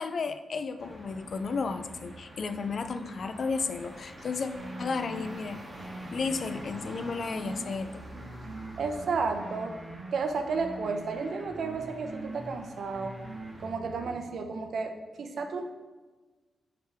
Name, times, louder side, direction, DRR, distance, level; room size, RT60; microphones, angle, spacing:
voice 1, 0.0-4.5 4.8-5.7 6.0-8.0, left 4 dB, 50° left, 9 dB, 0.4 m, -33 dB
sound 1, 0.8-13.7, right 1 dB, 15° right, 1.5 m, -48 dB
sound 2, 4.5-5.3 5.7-7.7 8.1-10.1 10.5-12.5 12.9-14.1, right 2 dB, 35° right, 1.2 m, -43 dB
voice 2, 8.8-9.7 10.1-13.2 13.6-15.6, right 4 dB, 65° right, 6 dB, 0.7 m, -32 dB
7.8 x 4.9 x 3.4 m, 1.3 s
cardioid pair, 110°, 0 cm